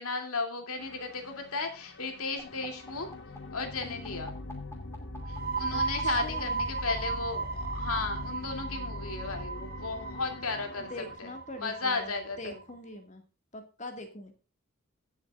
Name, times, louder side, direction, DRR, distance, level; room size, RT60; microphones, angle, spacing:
voice 1, 0.0-3.1 3.5-4.3 5.3-10.9 11.2-12.6, left 4 dB, 85° left, 5 dB, 2.8 m, -35 dB
sound 1, 0.8-11.2, left 2 dB, 55° left, 1.3 m, -42 dB
sound 2, 2.4-7.0 8.1-10.4, left 2 dB, 10° left, 2.5 m, -50 dB
voice 2, 3.8-4.2 5.7-6.6 10.9-13.2 13.5-14.3, left 1 dB, 35° left, 5 dB, 2.0 m, -43 dB
sound 3, 5.2-12.6, right 4 dB, 45° right, 2.4 m, -36 dB
22.0 x 7.4 x 2.4 m, 0.33 s
head